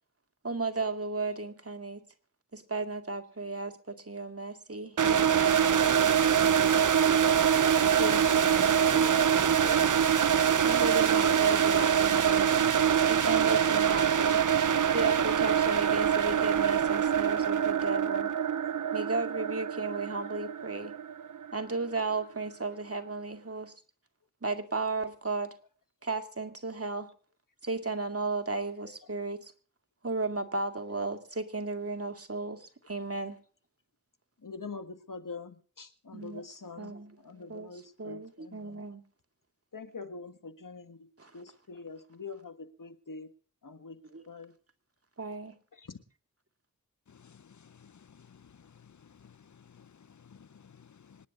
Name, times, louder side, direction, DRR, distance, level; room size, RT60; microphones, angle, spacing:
voice 1, 0.4-2.0 2.5-6.1 6.4-6.9 10.6-12.5 13.1-14.4 14.9-18.3 18.9-20.9 21.5-23.7 24.4-25.5 26.0-27.1 27.6-29.5 30.0-33.4 36.1-36.4 36.8-37.2 37.5-37.7 38.0-39.0 41.2-41.3 44.1-44.2 45.2-45.6, right 3 dB, 45° right, 2.2 m, -34 dB
sound 1, 5.0-21.8, right 8 dB, 70° right, 0.6 m, -25 dB
voice 2, 8.0-9.9 34.4-38.8 39.7-41.1 41.3-43.3 43.6-44.0 44.3-44.5 45.7-46.0, left 4 dB, 80° left, 1.7 m, -43 dB
voice 3, 47.2-48.5 49.2-49.9 50.3-51.2, left 7 dB, 65° left, 0.6 m, -56 dB
25.5 x 10.0 x 3.8 m
wide cardioid pair, 40°, 32 cm